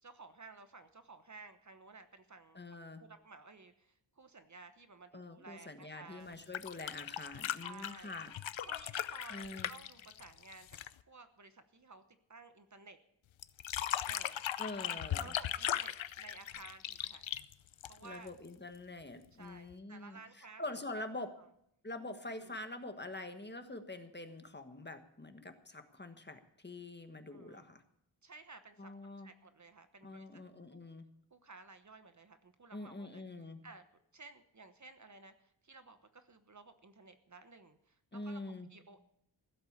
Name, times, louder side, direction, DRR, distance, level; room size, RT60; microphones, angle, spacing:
voice 1, 0.0-6.4 7.5-8.1 8.6-10.8 11.1-12.0 12.3-13.0 14.0-14.4 15.2-17.2 17.9-18.3 19.3-21.0 22.3-22.6 27.3-27.6 28.2-30.3 30.7-30.8 31.3-33.2 33.6-33.8 34.1-38.4 38.7-39.0, right 3 dB, 40° right, 9 dB, 1.1 m, -55 dB
voice 2, 2.5-3.0 5.1-8.3 9.3-9.7 14.6-15.3 18.0-21.3 21.8-27.8 28.8-29.3 30.0-31.1 32.7-33.6 38.1-38.7, left 2 dB, 25° left, 7 dB, 1.4 m, -45 dB
sound 1, 6.3-11.0 13.4-18.3 19.7-19.8, left 11 dB, 90° left, 0.7 m, -38 dB
16.0 x 7.9 x 8.7 m, 0.74 s
wide cardioid pair, 115°, 45 cm